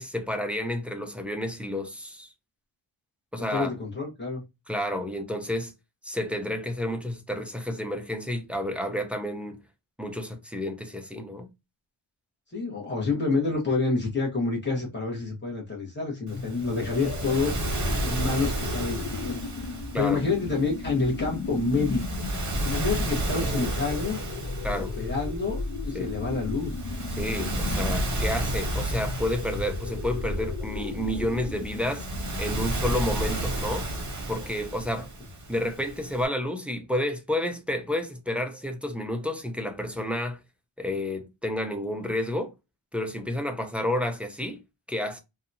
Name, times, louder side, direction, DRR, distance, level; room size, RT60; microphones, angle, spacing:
voice 1, 0.0-2.3 3.3-3.7 4.7-5.7 6.0-9.6 10.0-11.5 19.9-20.2 23.5-23.7 24.6-24.9 25.9-26.1 27.2-32.0 32.4-33.9 34.3-35.1 35.5-40.4 40.8-42.5 42.9-44.6 44.9-45.2, left 1 dB, 5° right, 0.3 m, -30 dB
voice 2, 3.4-4.4 12.5-17.7 18.0-22.2 22.6-24.2 24.8-26.7, left 4 dB, 20° left, 1.1 m, -28 dB
sound 1, 16.2-33.7, left 3 dB, 55° left, 0.5 m, -35 dB
Waves surf, 16.3-36.3, right 1 dB, 35° right, 0.8 m, -33 dB
2.7 x 2.2 x 2.6 m
wide cardioid pair, 135°, 49 cm